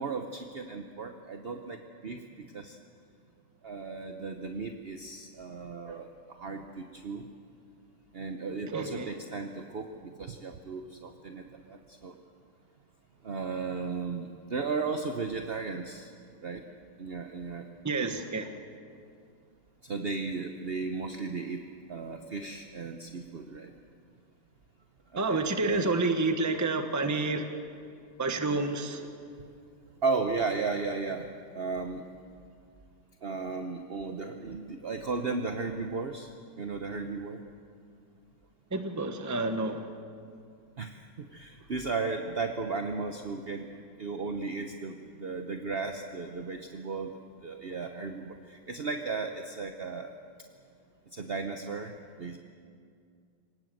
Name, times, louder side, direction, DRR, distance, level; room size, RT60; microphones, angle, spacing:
voice 1, 0.0-2.8 3.6-7.2 8.1-12.1 13.2-16.1 16.4-16.6 17.0-17.7 19.8-21.6 21.9-23.7 25.1-25.9 30.0-32.1 33.2-37.4 40.8-43.7 44.0-47.1 47.4-50.1 51.1-51.9 52.2-52.4, right 4 dB, 45° right, 5 dB, 0.8 m, -35 dB
voice 2, 8.7-9.1 17.8-18.5 25.2-27.5 28.2-29.1 38.7-39.9, right 3 dB, 10° right, 7 dB, 1.0 m, -29 dB
26.0 x 18.5 x 7.8 m, 2.3 s
omnidirectional pair, 2.3 m